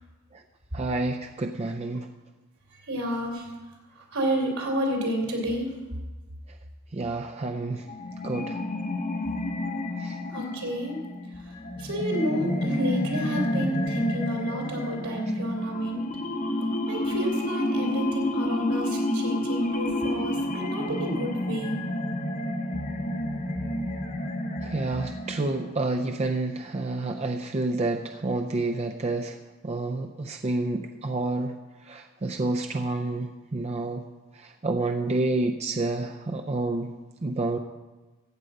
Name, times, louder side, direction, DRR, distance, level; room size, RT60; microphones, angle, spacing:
voice 1, 0.7-2.1 6.9-7.8 8.2-8.6 10.0-10.2 24.6-29.4 29.6-31.5 31.9-34.0 34.4-36.9 37.2-37.6, right 2 dB, 30° right, 5 dB, 0.4 m, -29 dB
voice 2, 2.7-3.5 3.9-5.7 10.3-11.0 11.3-16.1 16.9-21.8, equal, 80° right, 0 dB, 3.2 m, -30 dB
sound 1, 7.8-25.8, left 1 dB, 35° left, 0.9 m, -30 dB
15.0 x 5.2 x 7.8 m, 1.2 s
head